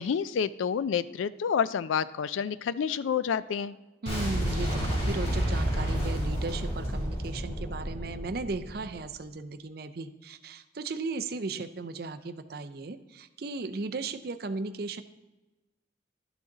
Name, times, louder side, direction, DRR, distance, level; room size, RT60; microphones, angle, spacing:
voice 1, 0.0-3.8, left 7 dB, 90° left, 17 dB, 0.4 m, -29 dB
voice 2, 4.0-15.0, right 3 dB, 55° right, 10 dB, 0.5 m, -36 dB
Boom, 4.1-9.0, equal, 35° left, 2.8 m, -30 dB
11.0 x 6.1 x 3.9 m, 1.1 s
head